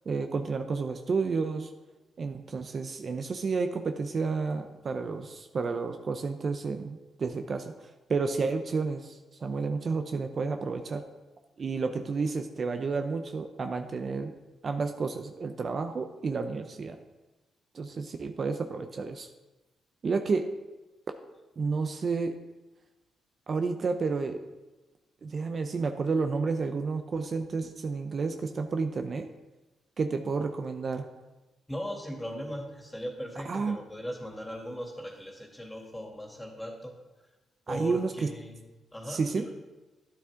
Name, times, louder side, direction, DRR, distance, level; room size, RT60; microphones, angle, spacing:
voice 1, 0.1-1.7 2.2-11.0 11.6-14.3 14.6-17.0 17.7-19.3 20.0-20.5 21.6-22.4 23.5-24.4 25.2-29.3 30.0-31.1 33.5-33.8 37.7-38.3 39.1-39.5, right 4 dB, 50° right, 7 dB, 0.7 m, -31 dB
voice 2, 31.7-36.9 37.7-38.6 38.9-39.5, equal, 10° left, 0 dB, 2.6 m, -38 dB
12.0 x 9.7 x 3.8 m, 1.1 s
cardioid pair, 75°, 0 cm